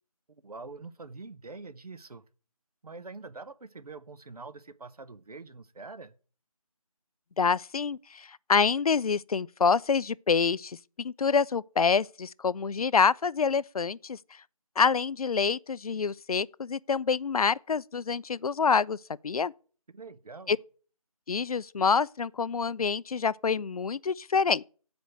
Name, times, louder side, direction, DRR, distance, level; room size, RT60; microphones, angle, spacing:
voice 1, 0.4-2.2 2.8-6.1 19.9-20.5, right 3 dB, 80° right, 0.8 m, -44 dB
voice 2, 7.4-14.2 14.8-19.0 19.2-19.5 20.5-20.6 21.3-24.6, left 5 dB, 70° left, 0.4 m, -26 dB
8.0 x 5.2 x 7.5 m
figure-of-eight pair, 175°, 19 cm